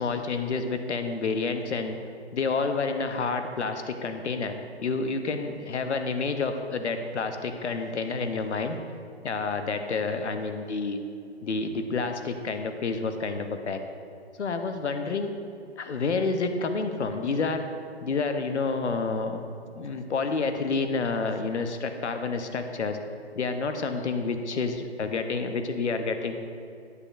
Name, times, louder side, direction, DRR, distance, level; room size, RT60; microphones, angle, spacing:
voice 1, 0.0-2.0 2.3-8.8 9.2-11.0 11.4-13.8 14.4-15.3 15.8-17.6 18.0-19.4 19.7-23.0 23.3-26.4, left 4 dB, 85° left, 7 dB, 0.8 m, -29 dB
9.5 x 7.9 x 2.5 m, 2.5 s
hypercardioid pair, 150°, 33 cm